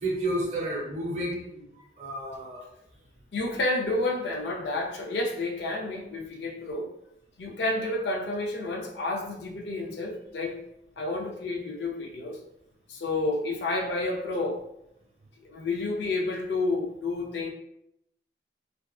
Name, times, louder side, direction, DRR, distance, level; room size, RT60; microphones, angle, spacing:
voice 1, 0.0-1.7 2.0-2.6 7.7-7.9, right 1 dB, 40° right, -2 dB, 0.6 m, -31 dB
voice 2, 3.3-6.9 7.4-10.6 11.0-12.4 12.9-14.6 15.4-17.5, left 2 dB, 70° left, 2 dB, 0.4 m, -30 dB
2.6 x 2.3 x 2.2 m, 0.79 s
head